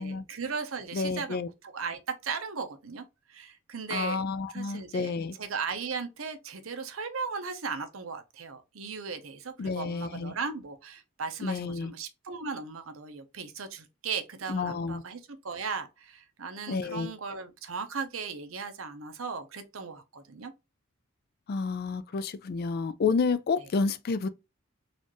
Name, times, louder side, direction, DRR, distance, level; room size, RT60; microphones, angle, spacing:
voice 1, 0.0-3.0 3.3-4.2 4.5-20.5, right 5 dB, 80° right, 0.8 m, -37 dB
voice 2, 0.9-1.5 3.9-5.3 9.6-10.3 11.4-11.9 14.5-15.0 16.7-17.1 21.5-24.3, left 4 dB, 50° left, 0.4 m, -30 dB
4.1 x 2.5 x 3.0 m
head